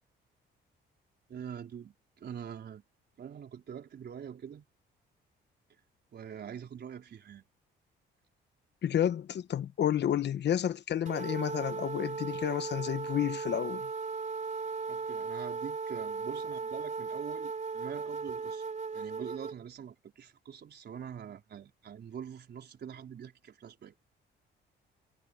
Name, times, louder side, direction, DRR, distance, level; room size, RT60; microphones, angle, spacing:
voice 1, 1.3-2.8 3.2-4.7 6.1-7.4 14.9-18.6 18.9-23.9, right 8 dB, 55° right, 4.3 m, -44 dB
voice 2, 8.8-13.9, left 10 dB, 60° left, 1.1 m, -30 dB
sound 1, 11.1-19.6, right 5 dB, 40° right, 4.3 m, -37 dB
cardioid pair, 90°, 20 cm